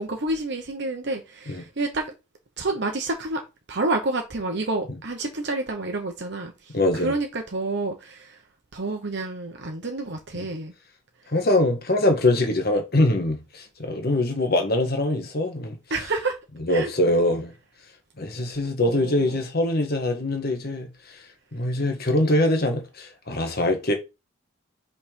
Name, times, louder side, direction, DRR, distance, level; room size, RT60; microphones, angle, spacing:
voice 1, 0.0-2.1 2.6-3.4 3.7-8.4 8.7-10.7 15.9-16.4 16.7-16.9 18.8-19.4, right 2 dB, 60° right, 1.0 m, -29 dB
voice 2, 6.7-7.1 11.3-15.8 16.6-17.5 18.2-21.2 21.5-23.9, left 1 dB, 50° left, 1.5 m, -23 dB
5.5 x 4.2 x 4.5 m
head